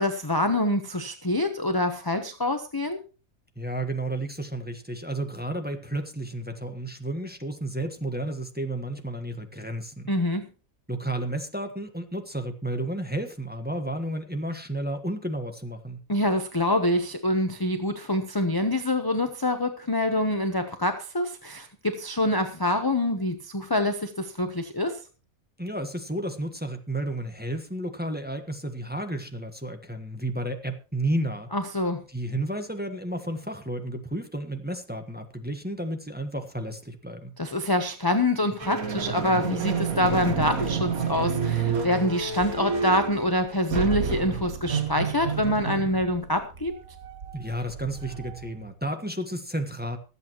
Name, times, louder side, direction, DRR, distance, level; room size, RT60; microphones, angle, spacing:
voice 1, 0.0-3.0 10.1-10.4 16.1-25.0 31.5-32.0 37.4-46.7, left 1 dB, 20° left, 7 dB, 0.9 m, -26 dB
voice 2, 3.6-10.1 10.9-16.0 25.6-31.5 32.1-37.3 47.3-50.0, right 1 dB, 5° right, 5 dB, 1.3 m, -32 dB
sound 1, 38.6-48.7, right 6 dB, 90° right, 2.0 m, -30 dB
24.5 x 8.4 x 3.0 m, 0.34 s
omnidirectional pair, 1.4 m